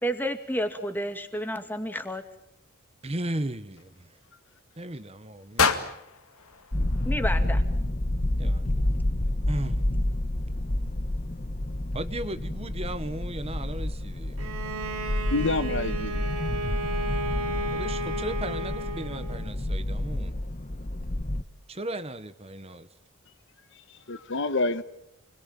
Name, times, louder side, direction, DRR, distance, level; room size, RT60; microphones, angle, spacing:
voice 1, 0.0-2.2 7.1-7.6, equal, 10° left, 2.2 m, -30 dB
voice 2, 3.0-4.2 4.8-6.0 8.4-8.9 9.5-9.9 11.9-14.5 17.7-20.3 21.7-22.9, right 1 dB, 25° right, 1.0 m, -36 dB
sound 1, 5.6-7.7, left 5 dB, 75° left, 2.2 m, -29 dB
sound 2, 6.7-21.4, left 1 dB, 35° left, 1.0 m, -29 dB
Bowed string instrument, 14.4-19.5, right 1 dB, 80° right, 2.9 m, -33 dB
voice 3, 15.3-16.3 24.1-24.8, left 3 dB, 55° left, 1.1 m, -27 dB
29.0 x 21.5 x 9.0 m
head